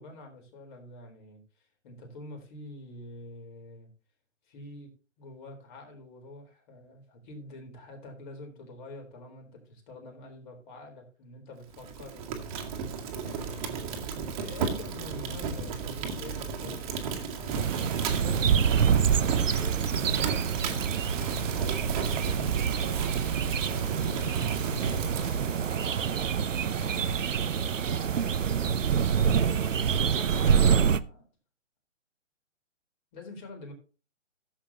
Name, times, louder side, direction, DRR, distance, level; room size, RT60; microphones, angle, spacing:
voice 1, 0.0-3.9 4.5-4.9 5.2-12.2 13.2-23.1 23.5-26.4 26.7-28.2 29.1-31.2 33.1-33.7, left 2 dB, 40° left, 4.1 m, -47 dB
Fire, 11.7-26.1, right 6 dB, 30° right, 1.9 m, -35 dB
sound 1, 17.5-31.0, right 7 dB, 85° right, 0.8 m, -26 dB
16.0 x 7.4 x 2.9 m
hypercardioid pair, 150°, 37 cm